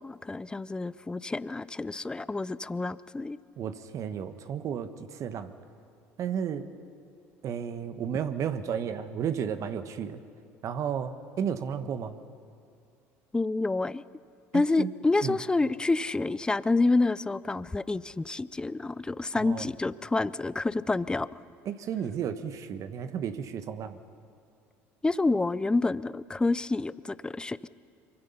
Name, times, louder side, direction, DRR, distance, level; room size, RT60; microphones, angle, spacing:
voice 1, 0.0-3.4 13.3-14.0 14.5-21.3 25.0-27.7, left 3 dB, 10° left, 18 dB, 0.6 m, -28 dB
voice 2, 3.6-5.5 6.2-6.7 7.4-10.2 10.6-12.2 14.5-14.9 15.2-15.4 19.3-19.7 21.6-24.0, right 8 dB, 50° right, 10 dB, 1.3 m, -33 dB
24.0 x 23.5 x 5.7 m, 2.3 s
hypercardioid pair, 75°, 7 cm